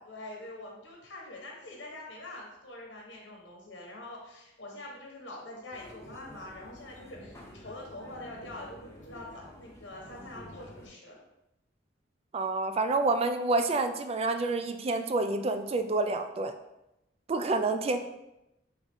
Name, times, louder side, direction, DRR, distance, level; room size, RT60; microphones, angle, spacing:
voice 1, 0.1-11.2 17.9-18.0, left 1 dB, 85° left, -1 dB, 1.1 m, -45 dB
sound 1, 5.7-10.9, left 1 dB, 15° left, 0.8 m, -49 dB
voice 2, 12.3-16.5 17.3-18.0, right 3 dB, 35° right, 8 dB, 0.3 m, -28 dB
3.8 x 3.6 x 3.5 m, 0.89 s
head